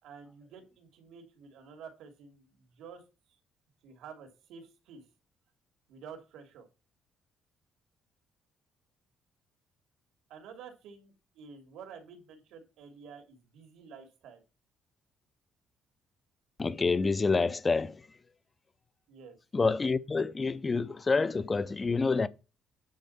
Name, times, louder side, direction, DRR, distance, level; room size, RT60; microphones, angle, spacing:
voice 1, 0.0-3.0 3.8-5.0 5.9-6.7 10.3-14.4 19.1-19.4, right 6 dB, 85° right, 2.8 m, -50 dB
voice 2, 16.6-18.0 19.5-22.3, left 4 dB, 20° left, 0.4 m, -27 dB
9.4 x 4.3 x 7.0 m
cardioid pair, 170°, 0 cm